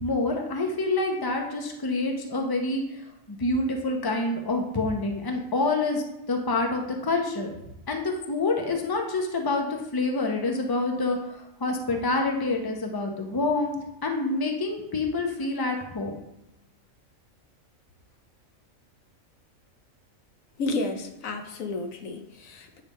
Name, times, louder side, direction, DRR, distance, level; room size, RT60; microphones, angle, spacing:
voice 1, 0.0-7.5 7.9-16.1, left 2 dB, 20° left, 2 dB, 0.8 m, -27 dB
voice 2, 20.6-22.8, left 2 dB, 80° left, 6 dB, 1.2 m, -32 dB
9.2 x 3.4 x 5.3 m, 0.90 s
omnidirectional pair, 1.4 m